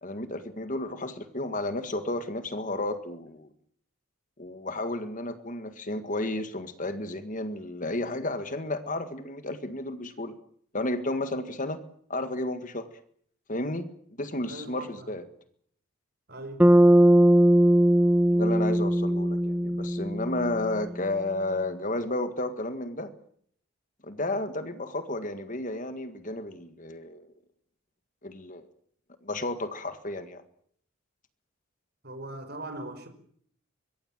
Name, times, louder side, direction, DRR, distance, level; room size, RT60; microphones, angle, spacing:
voice 1, 0.0-3.5 4.4-10.4 10.7-11.8 12.1-12.9 13.5-13.9 14.2-15.2 18.3-23.1 24.0-27.3 28.2-28.7 29.2-30.4, left 2 dB, 35° left, 1.8 m, -32 dB
voice 2, 14.5-15.2 16.3-16.6 32.0-33.1, right 2 dB, 45° right, 5.2 m, -40 dB
Bass guitar, 16.6-21.0, right 1 dB, 5° right, 1.0 m, -20 dB
24.5 x 23.5 x 7.5 m
head